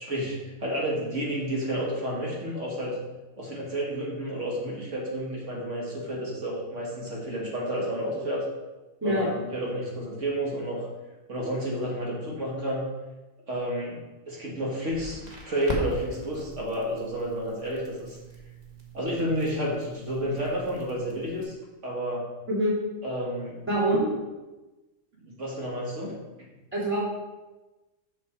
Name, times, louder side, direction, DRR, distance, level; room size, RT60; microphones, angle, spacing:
voice 1, 0.0-3.0 3.4-8.4 9.0-10.9 11.3-12.9 13.5-15.2 15.5-18.2 18.9-21.6 21.8-22.3 23.0-23.6 25.2-26.5, equal, 75° right, -3 dB, 2.0 m, -31 dB
Crackle, 14.9-21.4, right 1 dB, 35° right, 1.4 m, -40 dB
voice 2, 23.7-24.1 26.7-27.0, right 1 dB, 10° right, -6 dB, 2.4 m, -24 dB
6.7 x 6.3 x 4.4 m, 1.1 s
omnidirectional pair, 1.3 m